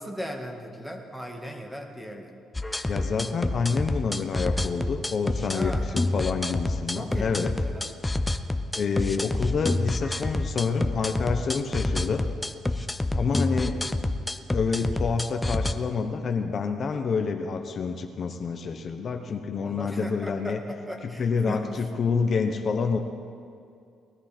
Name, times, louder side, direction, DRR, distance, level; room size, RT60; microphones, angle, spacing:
voice 1, 0.0-2.3 5.5-5.9 6.9-8.0 19.6-21.6, equal, 5° right, 2 dB, 2.0 m, -37 dB
sound 1, 2.5-15.7, left 2 dB, 15° left, 0.7 m, -28 dB
voice 2, 2.8-7.5 8.7-12.2 13.1-14.1 14.5-20.6 21.0-23.0, left 5 dB, 50° left, 5 dB, 1.0 m, -28 dB
19.5 x 13.5 x 4.5 m, 2.4 s
cardioid pair, 90°, 0 cm